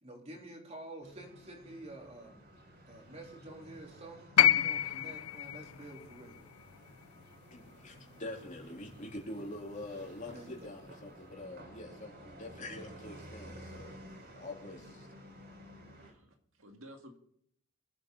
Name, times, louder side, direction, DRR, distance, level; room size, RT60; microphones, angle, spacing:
voice 1, 0.0-2.5 2.9-6.4 10.3-10.7, right 1 dB, 30° right, 0 dB, 3.6 m, -49 dB
sound 1, 1.0-16.1, equal, 50° right, 4.5 m, -53 dB
sound 2, 4.4-8.5 9.7-9.8, left 11 dB, 90° left, 0.5 m, -30 dB
voice 2, 7.5-13.9 14.4-15.1, left 1 dB, 35° left, -1 dB, 3.6 m, -45 dB
voice 3, 16.0-17.2, equal, 65° right, 3 dB, 2.1 m, -54 dB
25.0 x 8.9 x 4.0 m, 0.69 s
head